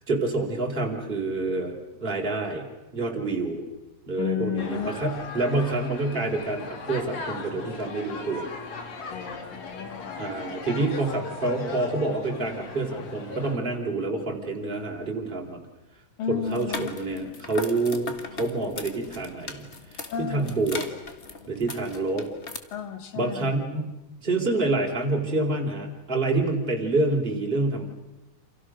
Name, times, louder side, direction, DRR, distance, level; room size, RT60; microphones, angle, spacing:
voice 1, 0.1-1.7 2.0-2.6 2.9-3.6 4.1-8.4 10.2-15.6 16.3-19.7 19.9-20.8 21.5-22.3 23.1-23.9 24.2-27.9, right 2 dB, 15° right, 0 dB, 4.1 m, -27 dB
voice 2, 4.2-4.9 9.1-10.4 16.2-16.9 20.1-20.6 22.7-23.6, left 9 dB, 85° left, 9 dB, 3.8 m, -32 dB
sound 1, 4.6-13.6, left 3 dB, 55° left, 3.6 m, -38 dB
sound 2, 16.5-22.6, left 3 dB, 35° left, 1.2 m, -39 dB
29.0 x 28.0 x 6.5 m, 1.0 s
omnidirectional pair, 3.8 m